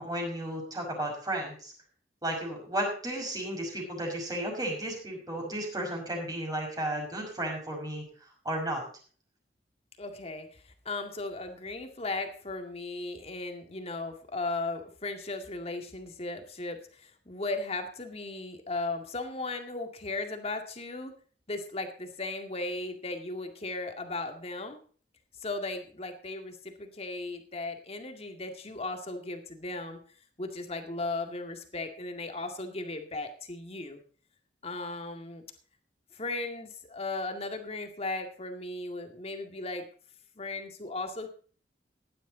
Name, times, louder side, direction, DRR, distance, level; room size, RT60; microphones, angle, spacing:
voice 1, 0.0-1.7 2.2-8.8, right 1 dB, 20° right, 0 dB, 5.7 m, -34 dB
voice 2, 10.0-21.1 21.5-24.8 25.4-30.0 30.4-34.0 34.6-35.4 36.1-39.9 40.4-41.3, left 2 dB, 35° left, 5 dB, 2.1 m, -36 dB
16.0 x 11.0 x 3.9 m, 0.43 s
head